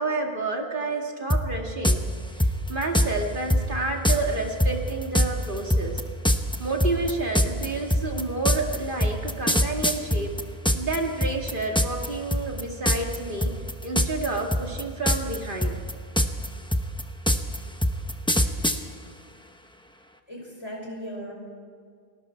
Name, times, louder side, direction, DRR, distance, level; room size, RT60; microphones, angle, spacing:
voice 1, 0.0-2.0 2.4-6.0 6.6-10.4 10.7-13.5 13.8-15.8, right 3 dB, 50° right, 1 dB, 2.4 m, -29 dB
sound 1, 1.3-1.4 1.8-2.0 2.4-3.1 3.5-3.6 4.0-4.2 4.6-11.0 11.2-12.1 12.3-12.6 12.9-13.2 13.4-14.3 14.5-15.4 15.6-18.8, equal, 5° left, 0.9 m, -22 dB
voice 2, 20.3-21.3, equal, 25° left, -1 dB, 5.6 m, -37 dB
29.5 x 20.0 x 4.6 m, 2.1 s
omnidirectional pair, 1.1 m